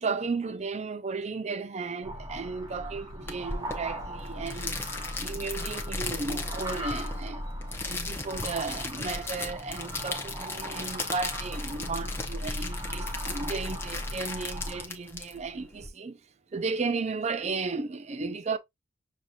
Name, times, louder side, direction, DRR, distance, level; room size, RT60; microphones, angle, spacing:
voice 1, 0.0-4.8 5.2-16.2 16.5-18.6, right 4 dB, 35° right, 0.5 m, -34 dB
sound 1, 2.0-14.9, equal, 20° right, 0.9 m, -37 dB
sound 2, 3.3-15.9, left 3 dB, 15° left, 0.7 m, -37 dB
6.4 x 2.8 x 2.4 m
head